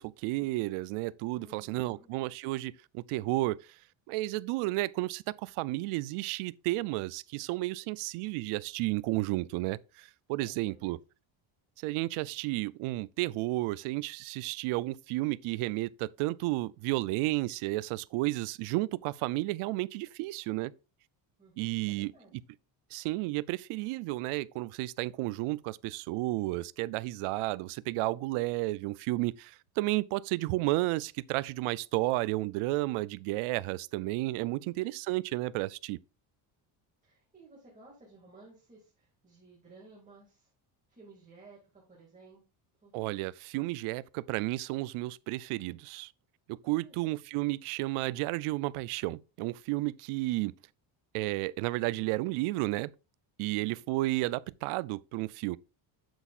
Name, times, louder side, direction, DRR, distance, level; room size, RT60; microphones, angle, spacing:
voice 1, 0.0-3.8 4.1-11.0 11.8-20.7 21.6-22.4 22.9-36.0 42.9-46.1 46.5-50.5 51.1-52.9 53.4-55.6, right 19 dB, 85° right, 0.6 m, -32 dB
voice 2, 1.3-2.1 10.4-11.0 21.4-22.3 34.4-34.8 37.0-40.5 40.9-42.4 42.8-42.9 46.8-47.1 53.4-53.8, right 3 dB, 15° right, 2.2 m, -56 dB
8.1 x 8.0 x 2.4 m
cardioid pair, 170°, 49 cm